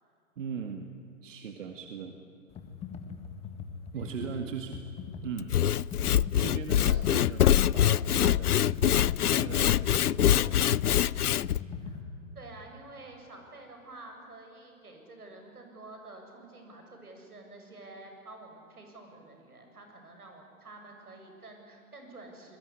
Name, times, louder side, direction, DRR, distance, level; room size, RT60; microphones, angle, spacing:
voice 1, 0.4-0.9 1.2-2.2 3.9-4.8 5.2-5.6 6.4-10.6, right 6 dB, 55° right, 6 dB, 2.1 m, -40 dB
Computer keyboard, 2.5-12.0, left 5 dB, 15° left, 1.8 m, -41 dB
Sawing / Wood, 5.4-11.6, left 11 dB, 90° left, 0.6 m, -24 dB
voice 2, 12.3-22.6, right 2 dB, 85° right, 3 dB, 7.7 m, -49 dB
26.0 x 21.5 x 10.0 m, 2.7 s
hypercardioid pair, 140°, 44 cm